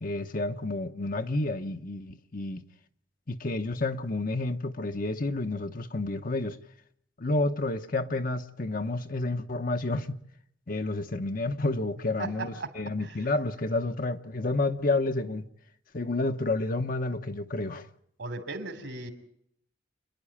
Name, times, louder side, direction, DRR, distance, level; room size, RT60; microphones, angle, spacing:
voice 1, 0.0-2.6 3.3-6.6 7.2-10.2 10.7-15.4 15.9-17.9, left 2 dB, 45° left, 0.9 m, -30 dB
voice 2, 12.2-12.7 13.0-13.2 18.2-19.1, right 3 dB, 70° right, 3.2 m, -36 dB
28.0 x 11.0 x 8.6 m
head